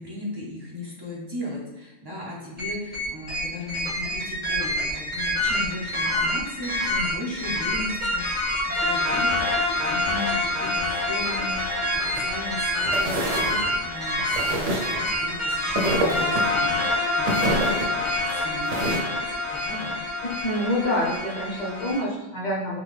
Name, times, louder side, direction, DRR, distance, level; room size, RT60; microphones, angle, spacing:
voice 1, 0.0-8.3 8.6-19.2 19.5-20.0, left 1 dB, 25° right, -4 dB, 0.6 m, -36 dB
sound 1, 2.6-22.0, left 1 dB, 10° right, 1.3 m, -26 dB
sound 2, 12.9-13.5 14.3-15.0 15.7-16.5 17.3-17.9 18.6-19.0, right 1 dB, 70° right, 1.0 m, -26 dB
voice 2, 20.2-22.8, left 1 dB, 45° left, -4 dB, 0.7 m, -27 dB
3.7 x 2.3 x 3.2 m, 1.0 s
omnidirectional pair, 1.3 m